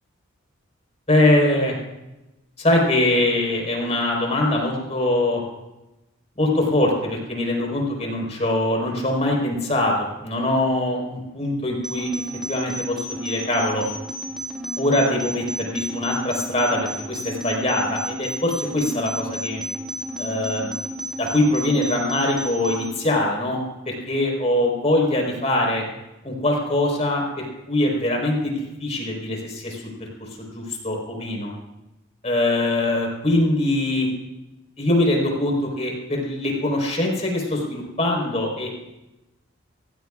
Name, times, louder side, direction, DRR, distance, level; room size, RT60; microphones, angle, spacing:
voice 1, 1.1-1.8 2.6-5.4 6.4-9.9 10.2-12.1 12.5-13.8 14.8-19.6 20.2-20.7 21.2-25.8 26.2-30.1 30.4-31.5 32.2-34.1 34.8-38.8, left 1 dB, 30° left, -1 dB, 4.4 m, -23 dB
sound 1, 11.8-22.9, equal, ahead, 2.7 m, -32 dB
26.5 x 16.5 x 2.5 m, 0.99 s
head